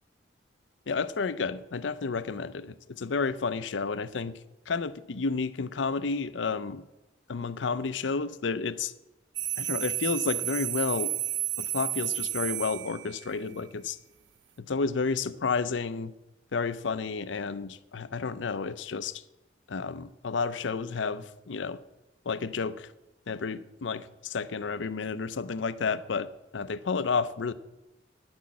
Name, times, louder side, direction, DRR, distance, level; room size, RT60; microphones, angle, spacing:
voice 1, 0.9-4.4 4.7-6.8 7.3-8.9 9.6-11.1 11.6-14.0 14.6-16.1 16.5-19.2 19.7-21.8 22.3-22.9 23.3-27.5, left 4 dB, 85° left, 15 dB, 0.6 m, -31 dB
sound 1, 9.3-13.4, right 14 dB, 80° right, 0.6 m, -32 dB
10.5 x 6.2 x 8.5 m, 0.97 s
head